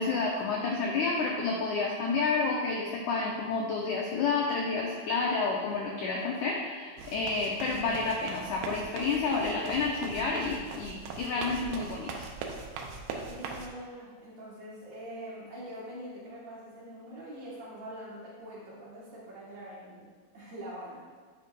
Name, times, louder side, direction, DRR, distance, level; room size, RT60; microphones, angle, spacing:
voice 1, 0.0-12.1, left 4 dB, 90° left, -2 dB, 1.7 m, -30 dB
sound 1, 7.0-13.7, right 4 dB, 85° right, 2.4 m, -41 dB
voice 2, 13.3-21.0, equal, 60° right, -7 dB, 2.1 m, -44 dB
9.5 x 5.1 x 2.2 m, 1.5 s
omnidirectional pair, 4.2 m